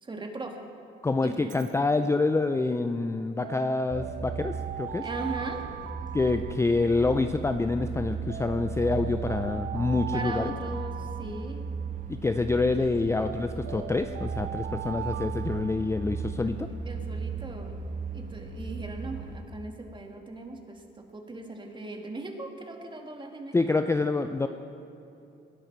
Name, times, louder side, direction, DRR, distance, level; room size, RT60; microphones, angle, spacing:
voice 1, 0.0-0.6 1.2-1.5 5.0-5.6 10.1-11.8 16.9-17.7 18.1-23.6, right 2 dB, 25° right, 3 dB, 1.9 m, -38 dB
voice 2, 1.0-5.1 6.1-10.5 12.1-16.7 23.5-24.5, left 3 dB, 15° left, 8 dB, 0.4 m, -27 dB
Alarm, 1.3-1.7 3.4-7.2 8.3-12.1 13.2-16.4, right 12 dB, 65° right, 0.4 m, -40 dB
sound 1, 3.9-19.4, right 5 dB, 40° right, 1.3 m, -36 dB
19.5 x 11.0 x 4.6 m, 2.8 s
cardioid pair, 90°, 20 cm